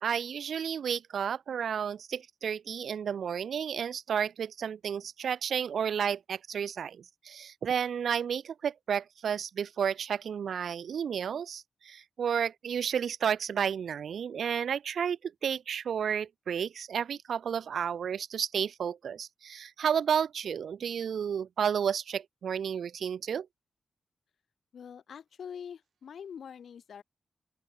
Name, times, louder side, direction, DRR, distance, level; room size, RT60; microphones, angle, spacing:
voice 1, 0.0-23.5, right 7 dB, 90° right, 0.5 m, -32 dB
voice 2, 24.7-27.0, left 7 dB, 80° left, 3.6 m, -44 dB
open air
wide cardioid pair, 160°, 0 cm